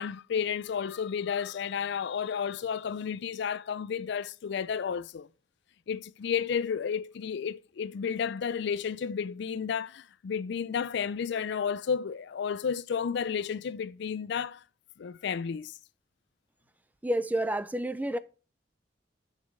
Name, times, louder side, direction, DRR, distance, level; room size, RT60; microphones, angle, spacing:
voice 1, 0.0-5.3 5.9-14.6 15.0-15.7, left 7 dB, 65° left, 0.4 m, -32 dB
voice 2, 17.0-18.2, right 1 dB, 10° right, 0.4 m, -29 dB
6.4 x 5.0 x 6.4 m
head